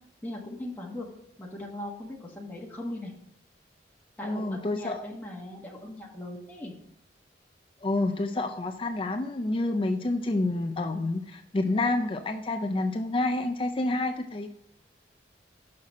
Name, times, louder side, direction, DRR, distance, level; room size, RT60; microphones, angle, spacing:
voice 1, 0.2-1.1 1.4-3.1 4.2-6.8, left 1 dB, 10° left, -4 dB, 1.4 m, -39 dB
voice 2, 4.2-5.0 7.8-14.5, left 2 dB, 30° left, 6 dB, 0.4 m, -28 dB
6.5 x 5.6 x 4.2 m, 0.79 s
head